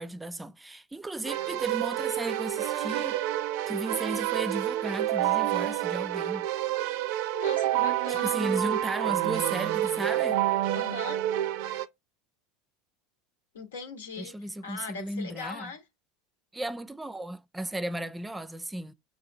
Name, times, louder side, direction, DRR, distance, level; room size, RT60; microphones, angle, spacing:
voice 1, 0.0-3.2 3.7-6.5 8.1-10.4 14.2-15.7 16.5-18.9, right 1 dB, 10° right, 0.4 m, -35 dB
Keyboard (musical), 1.2-11.9, right 14 dB, 65° right, 0.4 m, -28 dB
voice 2, 6.9-8.4 10.7-11.2 13.5-14.3 14.6-15.8, left 5 dB, 85° left, 1.1 m, -40 dB
5.9 x 2.4 x 2.7 m
hypercardioid pair, 90°, 0 cm